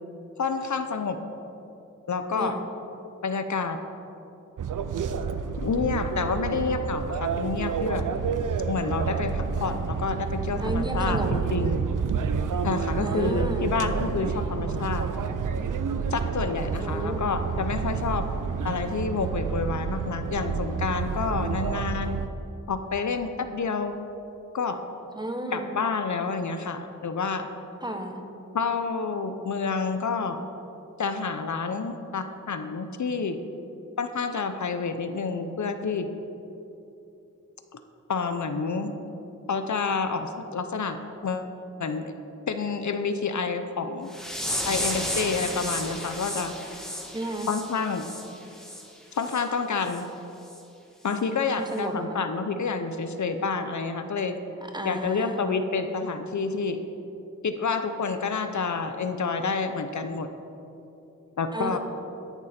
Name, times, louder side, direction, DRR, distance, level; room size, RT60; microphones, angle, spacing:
voice 1, 0.4-1.2 2.1-2.6 3.2-3.8 5.6-8.0 8.7-11.8 12.6-15.1 16.1-18.2 18.6-22.2 22.7-24.0 24.5-24.8 25.5-27.5 28.5-30.4 31.0-33.4 34.0-36.1 37.7-37.8 38.1-39.0 39.5-41.0 41.2-41.5 41.8-42.1 42.5-44.1 44.7-46.5 47.5-48.0 49.1-50.1 51.0-54.3 54.8-56.8 57.4-60.3 61.4-61.8, left 4 dB, 65° left, 8 dB, 0.8 m, -28 dB
voice 2, 2.3-2.6 10.6-11.3 13.0-13.8 16.8-17.2 25.1-25.7 27.8-28.2 47.1-47.5 51.7-52.2 54.7-55.4 61.5-61.8, right 1 dB, 15° right, 4 dB, 1.1 m, -32 dB
sound 1, 4.6-22.3, right 6 dB, 75° right, 0.6 m, -29 dB
sound 2, 44.1-48.8 49.2-49.4 49.8-50.0 50.5-50.6 51.1-51.2, equal, ahead, 2.0 m, -33 dB
14.0 x 10.5 x 4.4 m, 2.9 s
wide cardioid pair, 95°, 32 cm